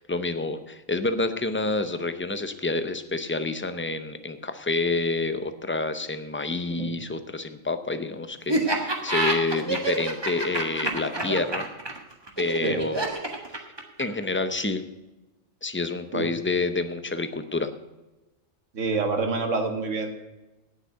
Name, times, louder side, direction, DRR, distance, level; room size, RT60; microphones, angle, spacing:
voice 1, 0.0-11.7 12.4-13.1 14.0-14.9 15.6-17.7, left 3 dB, 15° left, 10 dB, 0.4 m, -28 dB
Laughter, 8.5-14.2, right 2 dB, 20° right, 1.4 m, -27 dB
voice 2, 18.7-20.2, right 4 dB, 70° right, 6 dB, 1.7 m, -27 dB
9.0 x 8.1 x 9.0 m, 1.0 s
omnidirectional pair, 1.3 m